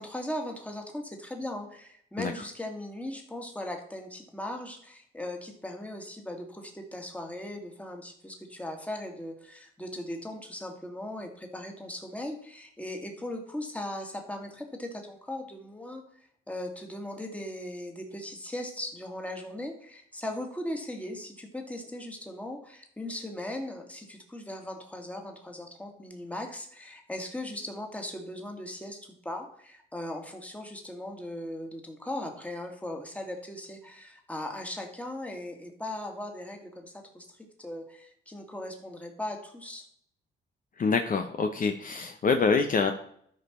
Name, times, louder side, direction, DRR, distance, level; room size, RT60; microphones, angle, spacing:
voice 1, 0.0-39.9, left 1 dB, 5° left, 2 dB, 2.1 m, -38 dB
voice 2, 40.8-42.9, left 4 dB, 45° left, 6 dB, 0.9 m, -26 dB
12.5 x 5.4 x 4.4 m, 0.66 s
cardioid pair, 90°, 20 cm